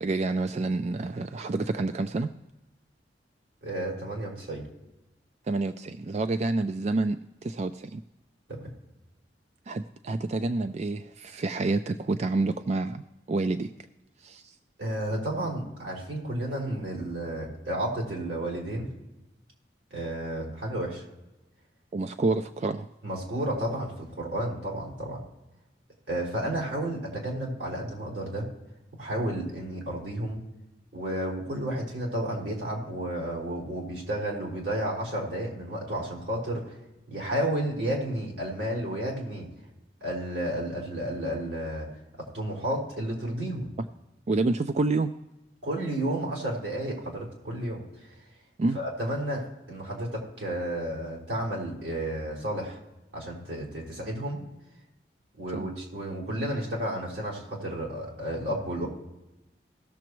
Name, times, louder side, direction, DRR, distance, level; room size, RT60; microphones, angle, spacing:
voice 1, 0.0-2.3 5.5-8.0 9.7-13.7 14.2-14.5 21.9-22.9 44.3-45.1 48.6-48.8 55.5-55.7, right 3 dB, 40° right, 9 dB, 0.4 m, -28 dB
voice 2, 3.6-4.6 8.5-8.6 14.8-18.9 19.9-21.1 23.0-25.2 26.1-28.5 29.0-30.4 30.9-36.8 37.1-39.5 40.0-41.9 42.3-43.7 45.6-48.1 48.7-52.8 53.1-54.4 55.4-58.9, right 1 dB, 85° right, -3 dB, 3.9 m, -32 dB
18.0 x 7.0 x 3.1 m, 0.99 s
head